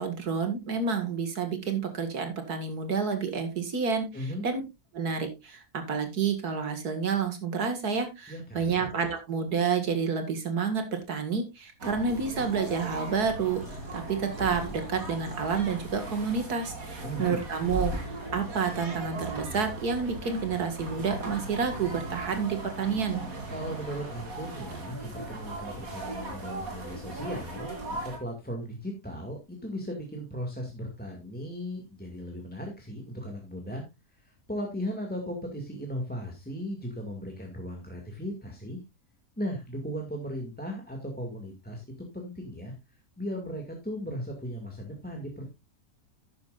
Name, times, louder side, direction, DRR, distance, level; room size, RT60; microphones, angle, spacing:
voice 1, 0.0-4.1 4.4-4.6 4.9-13.6 13.9-17.9 18.3-23.2, right 5 dB, 90° right, 7 dB, 2.5 m, -29 dB
voice 2, 4.1-4.4 8.3-9.0 17.0-17.4 23.5-33.8 34.1-38.8 39.4-41.8 42.1-42.7 43.2-45.5, equal, 5° left, 0 dB, 2.1 m, -37 dB
sound 1, 11.8-28.2, right 2 dB, 65° right, 3.3 m, -38 dB
sound 2, 12.1-13.2 13.4-16.2 16.5-16.6 17.7-18.1 19.2-19.3, equal, 40° left, 5.8 m, -40 dB
12.0 x 9.6 x 2.5 m, 0.23 s
omnidirectional pair, 1.6 m